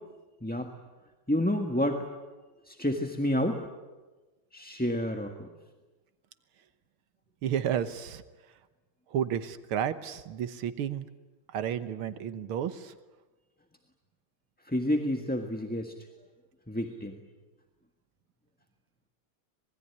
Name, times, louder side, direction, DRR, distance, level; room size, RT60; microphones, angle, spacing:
voice 1, 1.3-2.1 2.7-3.6 4.5-5.5 14.7-15.9 16.7-17.2, left 1 dB, 5° left, 3 dB, 1.4 m, -29 dB
voice 2, 7.4-8.2 9.1-11.1 11.5-12.9, right 9 dB, 85° right, 11 dB, 2.0 m, -31 dB
26.5 x 21.0 x 10.0 m, 1.2 s
omnidirectional pair, 2.3 m